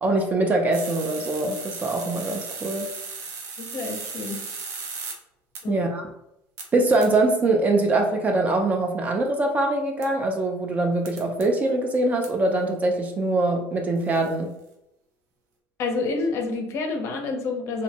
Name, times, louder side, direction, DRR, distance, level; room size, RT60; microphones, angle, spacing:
voice 1, 0.0-2.9 5.7-6.1 6.7-14.5, right 2 dB, 25° right, 3 dB, 0.3 m, -23 dB
sound 1, 0.7-5.1 5.5-5.6 6.6-6.7 7.0-7.1 10.0-10.1 11.0-11.4 12.2-12.3 14.0-14.3, right 4 dB, 65° right, 0.6 m, -36 dB
voice 2, 3.6-4.4 5.6-5.9 15.8-17.8, left 3 dB, 50° left, 3 dB, 0.5 m, -28 dB
2.5 x 2.1 x 2.7 m, 0.84 s
cardioid pair, 140°, 6 cm